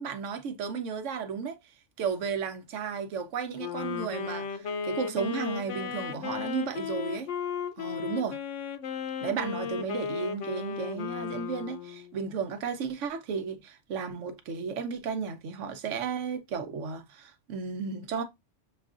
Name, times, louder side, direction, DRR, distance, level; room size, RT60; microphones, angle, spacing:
voice 1, 0.0-1.6 2.0-7.3 7.8-8.4 9.2-18.2, right 6 dB, 90° right, 1.1 m, -34 dB
Wind instrument woodwind instrument, 3.6-12.2, left 7 dB, 80° left, 1.0 m, -35 dB
6.6 x 2.4 x 2.4 m
omnidirectional pair, 1.2 m